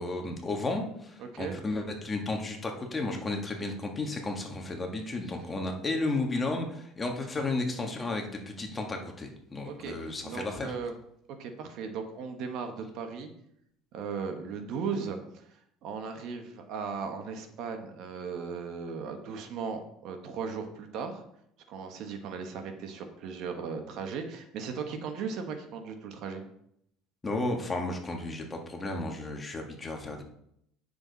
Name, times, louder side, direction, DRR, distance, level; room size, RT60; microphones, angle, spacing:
voice 1, 0.0-10.7 27.2-30.2, left 2 dB, 20° left, 2 dB, 1.7 m, -33 dB
voice 2, 1.2-1.6 9.6-10.9 11.4-13.3 13.9-21.2 21.7-26.4, right 5 dB, 60° right, 5 dB, 1.5 m, -37 dB
9.4 x 6.8 x 4.1 m, 0.72 s
cardioid pair, 125°, 0 cm